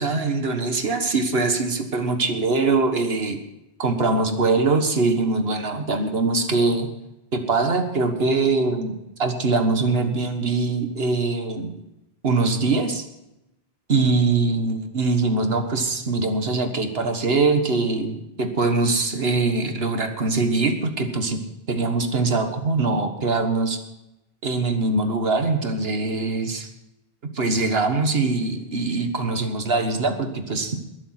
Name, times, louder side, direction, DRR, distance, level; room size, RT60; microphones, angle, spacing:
voice 1, 0.0-3.4 3.8-6.9 7.3-11.7 12.2-13.0 13.9-21.4 21.7-23.8 24.4-26.7 27.3-30.8, right 3 dB, 70° right, 7 dB, 1.7 m, -22 dB
21.5 x 7.2 x 5.8 m, 0.90 s
omnidirectional pair, 1.1 m